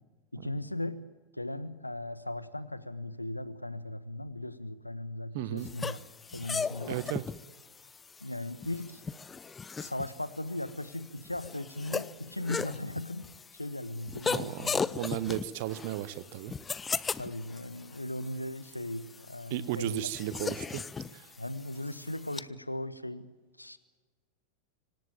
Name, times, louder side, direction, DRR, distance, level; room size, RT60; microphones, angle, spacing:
voice 1, 0.3-1.0 1.3-6.0 6.3-7.0 8.2-9.0 9.8-13.3 13.5-15.0 17.2-20.1 21.4-23.3 23.6-23.8, left 1 dB, 85° left, 15 dB, 1.4 m, -38 dB
voice 2, 5.3-5.7 6.9-7.2 14.3-14.7 15.0-16.5 19.5-20.9 21.1-21.3, right 13 dB, 50° right, 16 dB, 1.2 m, -34 dB
sound 1, 5.6-22.4, left 5 dB, 15° left, 0.7 m, -38 dB
25.5 x 18.5 x 8.9 m, 1.3 s
figure-of-eight pair, 90°, 0 cm